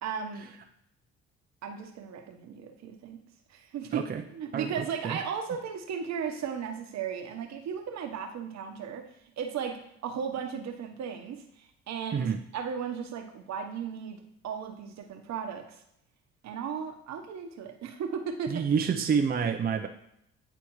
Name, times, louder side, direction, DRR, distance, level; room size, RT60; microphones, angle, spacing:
voice 1, 0.0-0.5 1.6-3.2 3.5-15.8 16.4-19.0, right 7 dB, 60° right, 5 dB, 1.1 m, -36 dB
voice 2, 4.5-5.2 12.1-12.4 18.5-19.9, right 6 dB, 30° right, 4 dB, 0.6 m, -28 dB
9.9 x 3.5 x 3.1 m, 0.77 s
supercardioid pair, 65°, 31 cm